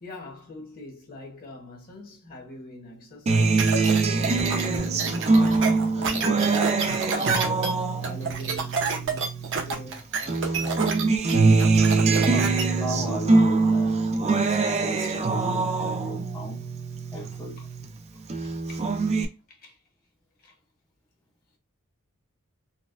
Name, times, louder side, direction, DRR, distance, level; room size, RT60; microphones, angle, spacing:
voice 1, 0.0-3.8 4.1-9.3 9.6-11.0 17.2-17.3 17.6-17.7 18.6-19.8 20.4-20.6, left 2 dB, 45° left, 1.0 m, -44 dB
Acoustic guitar, 3.3-9.9 10.3-17.9 18.3-19.2, right 3 dB, 30° right, 0.4 m, -23 dB
sound 1, 3.6-12.6, right 5 dB, 60° right, 0.8 m, -29 dB
voice 2, 12.3-16.6 17.1-17.6, equal, 15° left, 0.6 m, -36 dB
4.1 x 2.2 x 2.4 m
head